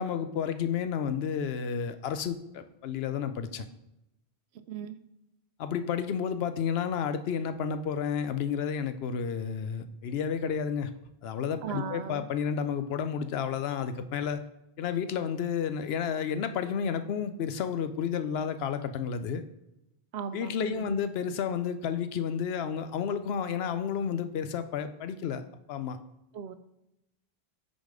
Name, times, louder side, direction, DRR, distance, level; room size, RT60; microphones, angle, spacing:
voice 1, 0.0-3.6 5.6-10.9 11.2-14.4 14.8-19.4 20.3-25.4 25.7-26.0, left 7 dB, 75° left, 10 dB, 0.8 m, -31 dB
voice 2, 11.6-12.2 20.1-21.0 26.3-26.6, right 7 dB, 85° right, 12 dB, 0.8 m, -37 dB
6.3 x 4.2 x 5.0 m, 0.90 s
omnidirectional pair, 1.1 m